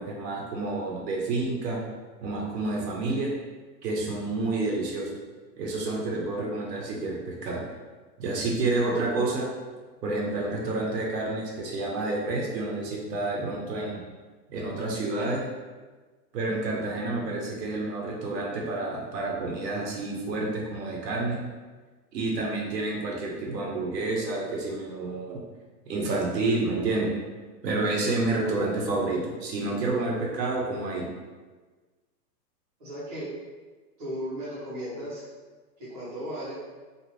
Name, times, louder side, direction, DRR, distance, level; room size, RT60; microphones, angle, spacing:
voice 1, 0.0-1.8 2.2-3.3 3.8-5.1 5.6-7.6 8.2-9.5 10.0-14.0 14.5-15.4 16.3-21.4 22.1-25.4 25.9-27.1 27.6-31.0, right 2 dB, 75° right, -2 dB, 0.9 m, -29 dB
voice 2, 32.8-33.3 34.0-35.2 35.8-36.5, equal, 25° right, -10 dB, 0.8 m, -35 dB
2.6 x 2.4 x 3.2 m, 1.3 s
hypercardioid pair, 165°, 50 cm